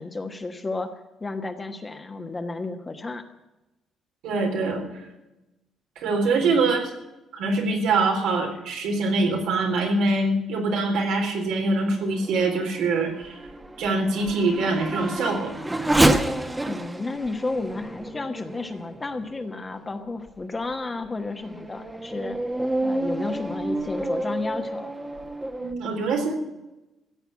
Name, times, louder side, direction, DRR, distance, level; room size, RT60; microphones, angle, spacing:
voice 1, 0.0-3.2 6.4-6.7 16.7-22.4 22.8-24.9, left 3 dB, 20° left, 5 dB, 1.3 m, -32 dB
voice 2, 4.2-4.8 6.0-6.8 7.3-13.4 13.8-15.5 25.6-26.3, right 3 dB, 85° right, 1 dB, 3.9 m, -24 dB
Race car auto racing / Accelerating revving vroom, 11.7-19.6 20.3-20.4 21.0-25.7, right 1 dB, 10° right, 1.3 m, -29 dB
15.5 x 8.0 x 9.3 m, 0.99 s
cardioid pair, 120°, 0 cm